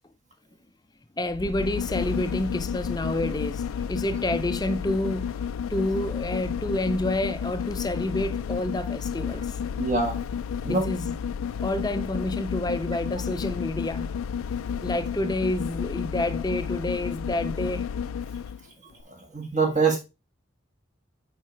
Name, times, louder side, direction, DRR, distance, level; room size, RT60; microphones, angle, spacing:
sound 1, 1.2-18.6 19.0-19.1, left 7 dB, 90° left, 0.3 m, -31 dB
voice 1, 1.2-9.6 10.7-11.2 11.6-14.2 14.8-17.9, left 1 dB, 20° left, 0.5 m, -29 dB
voice 2, 9.8-10.2 10.6-10.9 19.1-20.0, right 4 dB, 35° right, 1.6 m, -24 dB
7.8 x 4.8 x 3.2 m
head